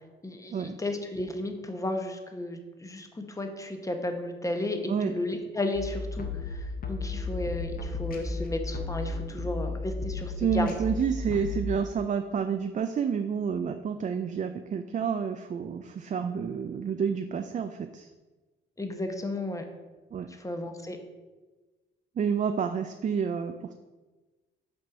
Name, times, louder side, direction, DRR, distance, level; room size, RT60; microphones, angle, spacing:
voice 1, 0.2-10.7 18.8-19.6 20.3-21.0, left 1 dB, 15° left, 5 dB, 1.1 m, -33 dB
sound 1, 5.7-11.6, left 3 dB, 45° left, 1.1 m, -34 dB
voice 2, 10.4-18.1 20.1-20.3 22.2-23.7, right 6 dB, 40° right, 7 dB, 0.4 m, -29 dB
6.2 x 4.4 x 6.2 m, 1.2 s
cardioid pair, 90°, 20 cm